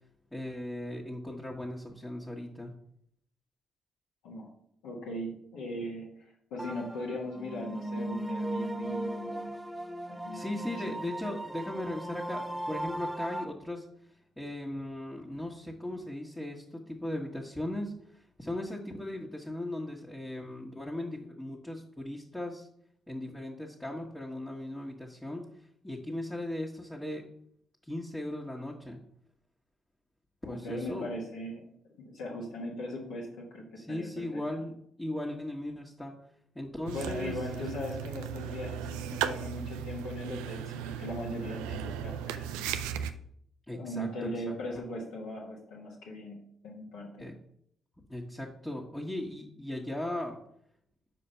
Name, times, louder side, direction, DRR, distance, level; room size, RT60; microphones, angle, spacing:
voice 1, 0.3-2.7 10.3-13.8 14.4-22.7 23.1-25.5 25.8-27.2 27.8-29.0 30.4-31.1 33.8-34.7 35.0-36.1 36.5-37.7 43.7-44.1 44.5-44.8 47.2-47.3 48.1-50.4, left 1 dB, 10° left, -2 dB, 1.3 m, -38 dB
voice 2, 4.8-9.5 10.1-11.0 30.4-31.7 32.0-34.4 36.9-42.9 43.7-47.3, left 1 dB, 75° left, -4 dB, 1.3 m, -39 dB
sound 1, 6.6-13.4, right 1 dB, 10° right, 0.9 m, -37 dB
sound 2, 36.9-43.1, right 9 dB, 80° right, 0.3 m, -36 dB
5.7 x 4.9 x 5.5 m, 0.70 s
hypercardioid pair, 45°, 0 cm